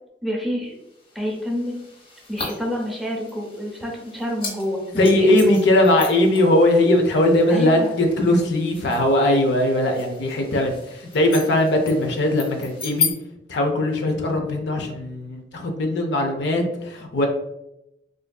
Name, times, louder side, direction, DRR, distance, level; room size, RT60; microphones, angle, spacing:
voice 1, 0.2-0.8 1.1-1.7 2.3-5.6 7.5-7.9, left 1 dB, ahead, -2 dB, 0.6 m, -28 dB
sound 1, 0.7-13.1, left 5 dB, 55° left, 1.2 m, -35 dB
voice 2, 5.0-13.1 13.5-17.3, left 1 dB, 70° left, 3 dB, 0.5 m, -19 dB
3.3 x 2.5 x 2.2 m, 0.84 s
head